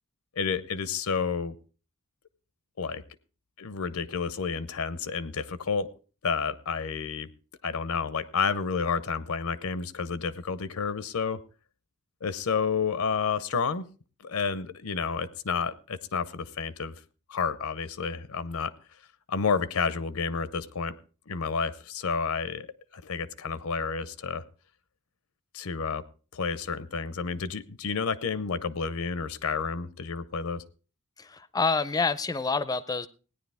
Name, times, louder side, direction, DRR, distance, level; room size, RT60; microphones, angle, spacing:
voice 1, 0.4-1.6 2.8-3.0 3.6-5.9 6.2-7.3 7.6-11.4 12.2-13.9 14.2-16.9 17.3-18.7 19.3-20.9 21.3-22.7 22.9-24.4 25.5-26.0 26.3-30.6, left 5 dB, 85° left, 15 dB, 0.7 m, -30 dB
voice 2, 31.2-33.1, left 4 dB, 20° left, 16 dB, 0.5 m, -27 dB
17.0 x 9.9 x 3.4 m, 0.36 s
head